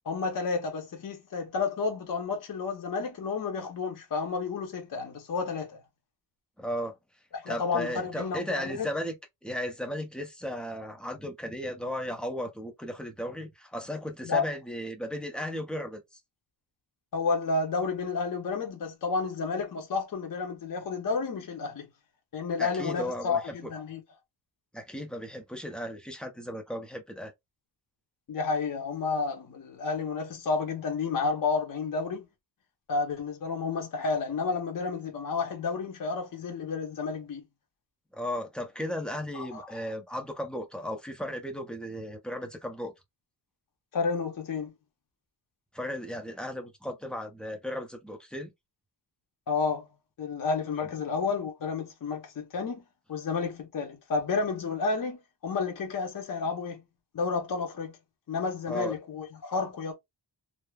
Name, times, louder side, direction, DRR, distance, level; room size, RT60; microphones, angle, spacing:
voice 1, 0.1-5.8 7.3-8.9 14.2-14.5 17.1-21.9 22.3-24.0 28.3-32.2 32.9-37.4 39.3-39.7 43.9-44.7 49.5-49.9 50.2-52.8 53.1-56.8 57.1-58.0 58.3-59.9, left 4 dB, 45° left, 0.7 m, -31 dB
voice 2, 6.6-6.9 7.5-9.1 9.4-16.0 22.6-23.5 24.7-27.3 38.1-42.9 45.7-48.5 58.7-58.9, equal, ahead, 0.5 m, -35 dB
3.1 x 2.0 x 2.2 m
wide cardioid pair, 155°, 46 cm